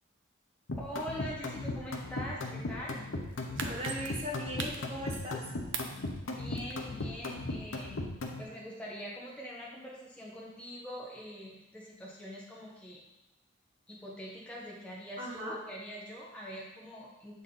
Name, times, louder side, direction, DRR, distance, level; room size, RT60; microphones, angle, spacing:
sound 1, 0.7-8.4, left 2 dB, 85° left, 0.8 m, -37 dB
voice 1, 0.8-3.1 6.4-8.0 8.4-13.0 13.9-17.4, equal, 5° left, -5 dB, 1.0 m, -43 dB
sound 2, 3.2-5.4 5.7-7.0 7.4-7.5, right 5 dB, 75° right, 0.6 m, -41 dB
voice 2, 3.7-5.5 15.2-15.5, equal, 30° right, -2 dB, 1.2 m, -38 dB
7.3 x 4.2 x 3.8 m, 0.95 s
head